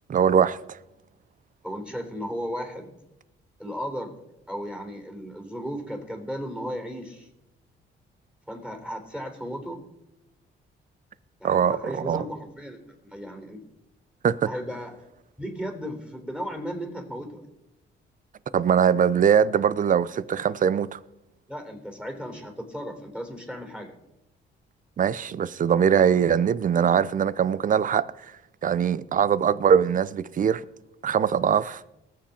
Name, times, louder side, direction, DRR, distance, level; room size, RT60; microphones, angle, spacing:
voice 1, 0.1-0.6 11.4-12.2 14.2-14.5 18.5-21.0 25.0-28.1 28.6-30.6 31.0-31.8, right 8 dB, 40° right, 0.6 m, -22 dB
voice 2, 1.6-2.9 3.6-4.1 4.5-7.3 8.5-9.8 11.4-13.6 14.5-15.0 15.4-17.4 21.5-23.9, equal, 5° right, 3.8 m, -35 dB
20.0 x 7.6 x 4.3 m
cardioid pair, 90°, 20 cm